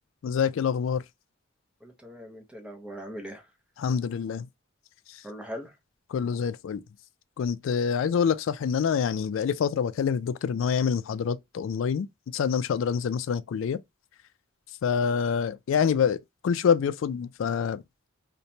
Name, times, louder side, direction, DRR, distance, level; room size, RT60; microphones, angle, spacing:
voice 1, 0.2-1.0 3.8-4.5 6.1-6.8 7.4-12.1 12.3-13.8 14.8-16.2 16.4-17.8, left 7 dB, 70° left, 0.3 m, -26 dB
voice 2, 1.8-3.5 5.2-5.7, equal, 5° right, 0.5 m, -40 dB
2.9 x 2.1 x 2.6 m
head